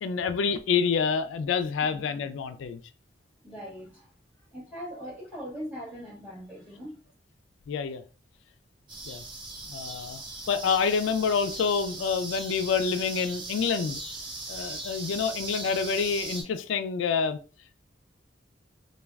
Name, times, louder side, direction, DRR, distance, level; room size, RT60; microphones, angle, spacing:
voice 1, 0.0-2.8 7.7-8.0 9.1-9.2 9.7-10.2 10.5-14.0 14.5-17.4, left 6 dB, 85° left, 10 dB, 0.3 m, -27 dB
voice 2, 3.4-4.1 4.5-7.0, equal, 10° right, -6 dB, 1.5 m, -40 dB
sound 1, 8.9-16.4, right 2 dB, 25° right, 0.8 m, -39 dB
3.3 x 2.3 x 2.3 m, 0.35 s
head